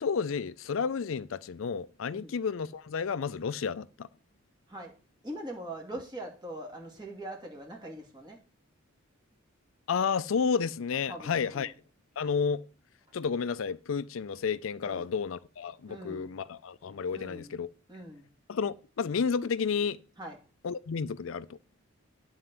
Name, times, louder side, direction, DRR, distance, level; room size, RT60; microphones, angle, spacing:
voice 1, 0.0-4.1 9.9-11.7 12.2-12.6 13.1-17.7 18.5-20.0 20.6-21.6, left 6 dB, 75° left, 0.4 m, -31 dB
voice 2, 5.2-8.4 11.1-11.7 13.1-13.2 14.8-15.1 15.9-16.4 17.1-17.6 17.9-18.3 20.2-20.4, right 1 dB, 20° right, 2.5 m, -42 dB
9.5 x 4.4 x 7.6 m
head